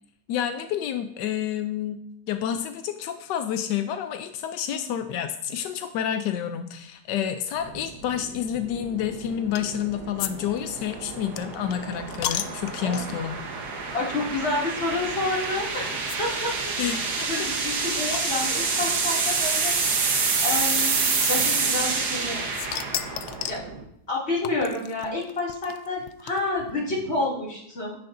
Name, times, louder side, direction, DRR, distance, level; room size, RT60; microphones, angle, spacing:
voice 1, 0.3-2.0 2.3-13.4 16.8-17.3, left 9 dB, 90° left, 8 dB, 1.2 m, -29 dB
sound 1, 7.6-23.8, right 4 dB, 70° right, 1.7 m, -28 dB
sound 2, 9.5-9.8 10.2-10.3 10.6-13.3 13.9-14.1 14.3-14.4 15.4-15.6 16.1-16.2 16.5-16.6 16.7-16.8 17.2-18.9 19.8-19.9 21.2-22.2 22.5-23.7 24.4-26.7, left 11 dB, 70° left, 1.0 m, -34 dB
voice 2, 13.9-16.7 17.3-19.8 20.4-22.4 23.5-23.6 24.1-28.0, left 2 dB, 40° left, -5 dB, 2.8 m, -29 dB
10.0 x 9.4 x 2.6 m, 0.73 s
omnidirectional pair, 1.8 m